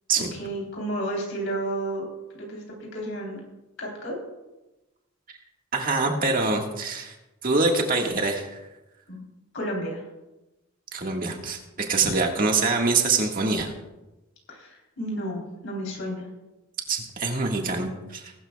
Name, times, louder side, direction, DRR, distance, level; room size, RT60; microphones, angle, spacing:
voice 1, 0.2-2.1 2.4-3.4 3.8-4.2 9.1-9.2 9.5-10.0 12.0-12.1 14.5-16.3, right 1 dB, 60° left, -1 dB, 3.7 m, -32 dB
voice 2, 5.7-7.1 7.4-8.6 10.9-13.7 16.9-18.3, right 3 dB, 40° right, 2 dB, 1.7 m, -25 dB
20.5 x 12.0 x 2.3 m, 1.0 s
head